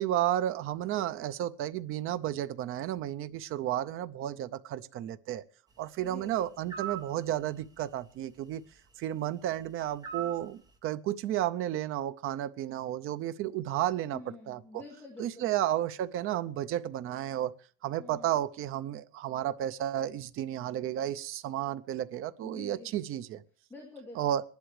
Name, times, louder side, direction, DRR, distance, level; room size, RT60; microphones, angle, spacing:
voice 1, 0.0-5.4 5.8-8.6 9.0-14.2 14.5-14.6 15.2-17.5 17.8-23.4 24.2-24.4, right 12 dB, 45° right, 0.6 m, -32 dB
voice 2, 6.0-6.5 14.1-15.6 18.0-18.4 22.4-23.2 23.7-24.4, left 3 dB, 10° left, 2.1 m, -48 dB
sound 1, 6.7-7.1 10.0-10.4, right 10 dB, 10° right, 1.2 m, -37 dB
22.5 x 11.5 x 3.2 m
cardioid pair, 170°, 31 cm